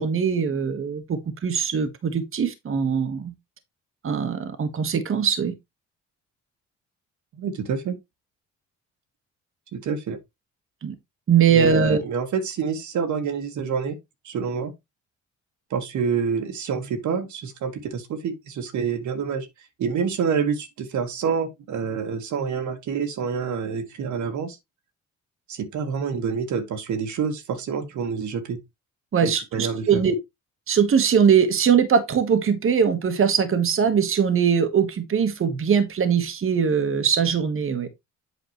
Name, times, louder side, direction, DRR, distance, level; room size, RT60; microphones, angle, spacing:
voice 1, 0.0-3.3 4.0-5.5 10.8-10.9 11.3-12.0 29.1-30.1 30.7-37.9, right 7 dB, 45° right, 1.4 m, -21 dB
voice 2, 7.4-8.0 9.7-10.2 11.5-14.0 14.3-14.7 15.7-19.5 19.8-24.6 25.5-28.6 29.2-30.0, right 6 dB, 70° right, 1.6 m, -27 dB
8.3 x 5.8 x 3.0 m
cardioid pair, 90°, 30 cm